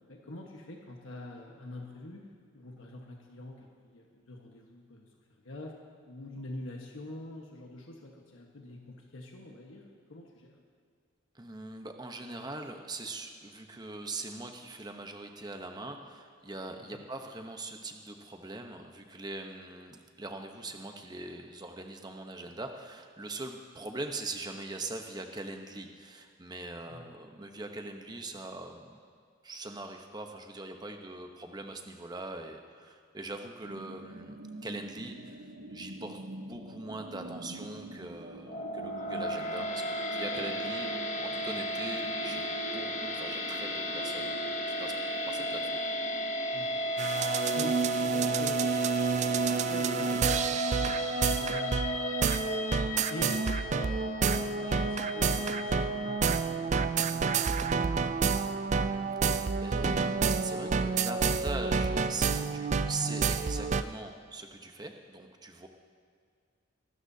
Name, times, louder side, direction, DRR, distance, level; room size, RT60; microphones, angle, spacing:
voice 1, 0.1-2.3 2.5-5.1 5.4-5.7 6.0-10.6 16.8-17.0 26.9-27.1 46.5-46.8 47.5-48.6 49.2-52.3 53.1-58.5, left 1 dB, 80° left, 0 dB, 1.3 m, -46 dB
voice 2, 11.3-29.0 29.4-36.2 36.5-40.9 41.2-42.5 42.7-45.0 45.3-45.8 59.2-65.7, right 2 dB, 20° right, 4 dB, 0.9 m, -42 dB
sound 1, 33.6-50.3, right 2 dB, 75° right, 0.9 m, -46 dB
sound 2, 38.4-56.7, equal, 35° left, 1.1 m, -34 dB
sound 3, 47.0-63.8, right 5 dB, 35° right, 0.3 m, -29 dB
24.5 x 13.0 x 2.8 m, 2.1 s
head